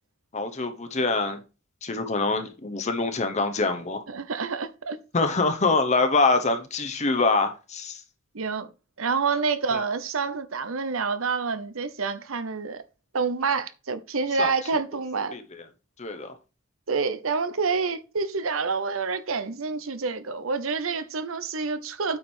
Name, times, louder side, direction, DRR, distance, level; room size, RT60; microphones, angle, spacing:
voice 1, 0.3-1.4 1.8-4.0 5.1-8.0 9.7-9.8 14.4-14.5 15.3-15.4 16.0-16.3, left 3 dB, 35° left, 0.8 m, -25 dB
voice 2, 4.1-5.0 8.3-8.7 9.0-12.8 13.1-15.4 16.9-22.2, right 4 dB, 80° right, 0.9 m, -28 dB
8.7 x 4.9 x 4.4 m
head